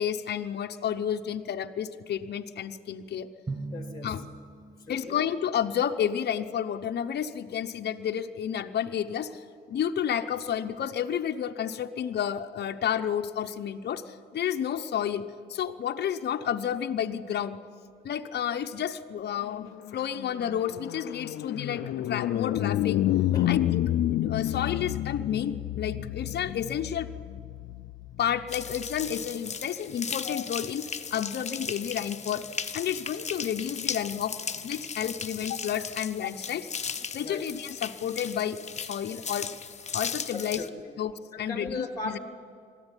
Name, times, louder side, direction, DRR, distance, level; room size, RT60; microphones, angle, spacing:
voice 1, 0.0-3.3 4.0-4.3 4.9-17.6 18.0-23.0 23.5-27.1 28.2-32.5 32.7-34.4 34.6-36.7 37.1-39.5 39.9-40.6 41.0-42.2, left 9 dB, 55° left, 6 dB, 0.9 m, -31 dB
Drum, 3.5-5.6, right 3 dB, 20° right, 1.1 m, -40 dB
voice 2, 3.7-4.1 4.8-5.2 23.3-23.5 37.2-37.4 40.3-40.9 41.3-42.2, left 3 dB, 20° left, 7 dB, 2.0 m, -38 dB
sound 1, 19.6-29.1, left 13 dB, 80° left, 0.6 m, -30 dB
sound 2, 28.5-40.7, left 6 dB, 35° left, 1.1 m, -37 dB
21.0 x 14.0 x 9.9 m, 2.3 s
cardioid pair, 90°, 20 cm